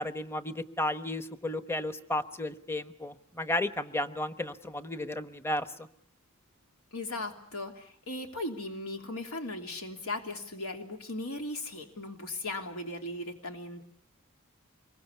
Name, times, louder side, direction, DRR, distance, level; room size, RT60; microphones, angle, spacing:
voice 1, 0.0-5.9, left 1 dB, 10° left, 11 dB, 1.1 m, -33 dB
voice 2, 6.9-13.8, left 2 dB, 85° left, 4 dB, 3.2 m, -37 dB
25.5 x 22.5 x 8.4 m, 0.68 s
head